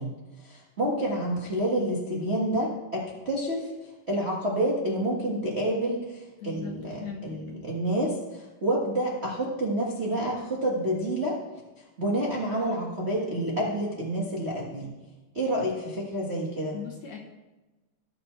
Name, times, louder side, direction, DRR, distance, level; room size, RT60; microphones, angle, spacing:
voice 1, 0.0-11.4 11.8-14.9 15.3-16.8, right 1 dB, 40° right, -5 dB, 0.9 m, -29 dB
voice 2, 6.4-6.7 7.0-7.4 16.7-17.2, left 6 dB, 65° left, 1 dB, 1.8 m, -38 dB
18.5 x 6.9 x 3.3 m, 1.1 s
omnidirectional pair, 3.9 m